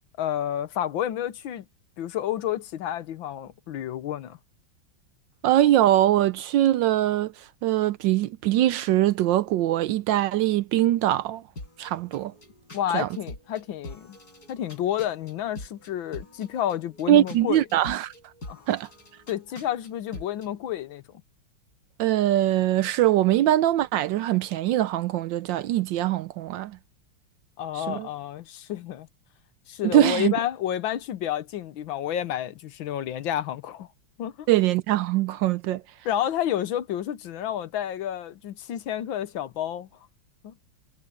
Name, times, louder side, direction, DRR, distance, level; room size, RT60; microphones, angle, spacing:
voice 1, 0.2-1.6 2.0-4.4 12.7-14.2 14.5-17.7 18.5-18.6 19.3-21.2 27.6-29.1 29.7-33.9 34.2-34.5 36.0-39.9 40.4-40.5, left 11 dB, 75° left, 1.6 m, -30 dB
voice 2, 5.4-7.3 7.6-11.4 11.8-12.3 12.9-13.1 17.1-18.1 18.7-18.9 22.0-26.8 27.7-28.1 29.8-30.3 34.5-35.8, right 13 dB, 75° right, 1.2 m, -22 dB
sound 1, 11.6-20.5, left 2 dB, 45° left, 7.6 m, -45 dB
omnidirectional pair, 2.3 m